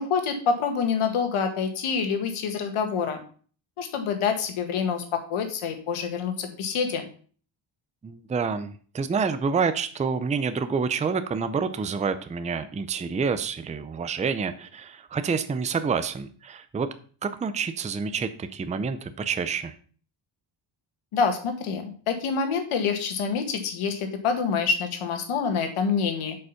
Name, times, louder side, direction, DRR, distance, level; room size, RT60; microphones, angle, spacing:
voice 1, 0.0-3.2 3.8-7.1 21.1-26.4, left 6 dB, 90° left, 6 dB, 1.9 m, -26 dB
voice 2, 8.0-16.9 17.2-19.7, right 5 dB, 15° right, 11 dB, 0.4 m, -28 dB
7.9 x 5.5 x 5.7 m, 0.43 s
wide cardioid pair, 165°, 49 cm